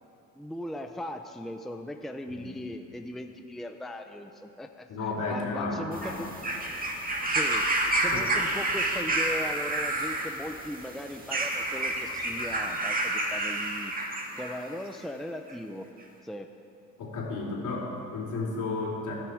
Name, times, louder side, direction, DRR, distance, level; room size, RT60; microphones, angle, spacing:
voice 1, 0.4-4.9 5.3-6.3 7.2-7.7 8.0-13.9 14.4-15.9 16.2-16.5, left 1 dB, ahead, 5 dB, 0.6 m, -38 dB
voice 2, 4.9-6.2 8.1-8.2 17.0-19.1, left 3 dB, 65° left, -3 dB, 3.5 m, -33 dB
sound 1, 5.9-14.6 15.5-15.6, right 2 dB, 25° right, 1.8 m, -29 dB
14.5 x 13.0 x 4.6 m, 2.7 s
cardioid pair, 105°, 33 cm